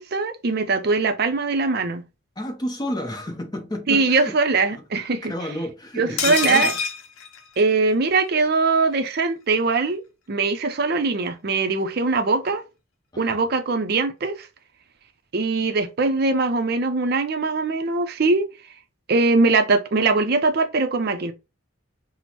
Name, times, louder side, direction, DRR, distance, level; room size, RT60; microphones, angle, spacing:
voice 1, 0.0-2.0 3.9-5.3 6.0-6.7 7.6-10.0 10.3-12.6 13.2-14.5 15.3-18.5 19.1-21.3, right 3 dB, 50° right, 0.5 m, -21 dB
voice 2, 2.4-4.3 4.7-4.8 5.2-6.7 13.1-13.4, left 1 dB, 20° left, 0.6 m, -31 dB
sound 1, 6.2-8.1 8.4-8.5 8.8-8.9, left 6 dB, 80° left, 0.6 m, -27 dB
6.0 x 2.0 x 2.9 m
head